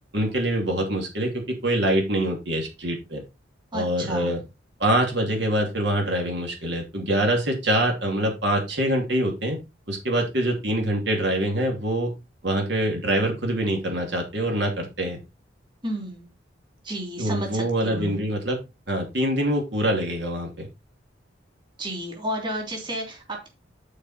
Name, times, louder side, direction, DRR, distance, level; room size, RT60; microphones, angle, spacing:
voice 1, 0.1-3.2 3.7-4.4 4.8-9.6 9.9-12.1 12.4-15.2 17.2-18.6 18.9-20.7, right 1 dB, 60° right, 2.7 m, -24 dB
voice 2, 3.7-4.3 15.8-16.3 16.8-18.2 21.8-23.5, right 1 dB, 25° right, 3.0 m, -32 dB
11.5 x 4.7 x 4.3 m
head